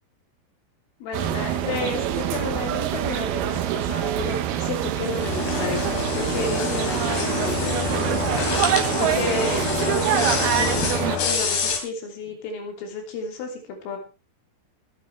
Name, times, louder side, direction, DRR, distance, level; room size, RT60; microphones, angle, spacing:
voice 1, 1.0-7.8 9.0-14.0, left 3 dB, 80° left, 3 dB, 5.7 m, -31 dB
sound 1, 1.1-11.2, right 11 dB, 70° right, 2.5 m, -25 dB
sound 2, 5.1-11.8, left 6 dB, 55° left, 4.3 m, -27 dB
24.5 x 9.4 x 3.3 m, 0.30 s
omnidirectional pair, 5.7 m